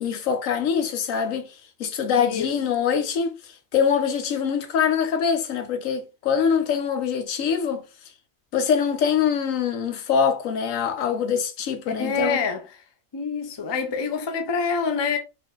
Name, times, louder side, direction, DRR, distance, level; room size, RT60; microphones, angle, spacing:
voice 1, 0.0-1.5 1.8-7.8 8.5-12.4, left 7 dB, 75° left, 1.1 m, -24 dB
voice 2, 2.1-2.5 12.0-12.6 13.1-15.2, left 5 dB, 30° left, 0.4 m, -26 dB
4.3 x 2.7 x 3.7 m
omnidirectional pair, 1.4 m